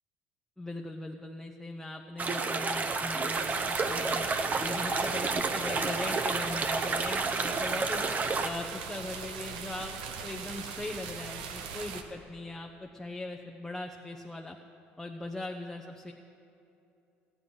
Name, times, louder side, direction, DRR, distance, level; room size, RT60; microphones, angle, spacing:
voice 1, 0.6-4.3 4.6-8.1 8.4-14.6 15.0-16.1, left 2 dB, 10° left, 2 dB, 0.8 m, -40 dB
sound 1, 2.2-8.5, right 4 dB, 35° right, 0.8 m, -30 dB
sound 2, 3.3-12.0, right 6 dB, 85° right, 0.9 m, -41 dB
14.5 x 9.7 x 5.5 m, 2.7 s
supercardioid pair, 80°, 5 cm